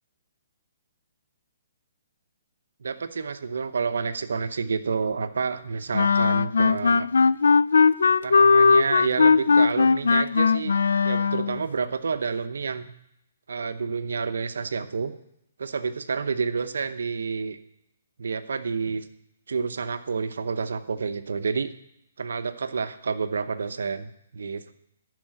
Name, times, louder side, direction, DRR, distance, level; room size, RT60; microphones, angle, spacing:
voice 1, 2.8-7.1 8.2-10.8 11.0-12.9 13.5-15.1 15.6-17.6 18.2-19.1 19.5-21.7 22.2-24.7, right 5 dB, 80° right, 11 dB, 0.8 m, -29 dB
sound 1, 5.9-11.6, left 5 dB, 90° left, 0.3 m, -19 dB
12.0 x 5.0 x 8.8 m, 0.79 s
hypercardioid pair, 160°, 0 cm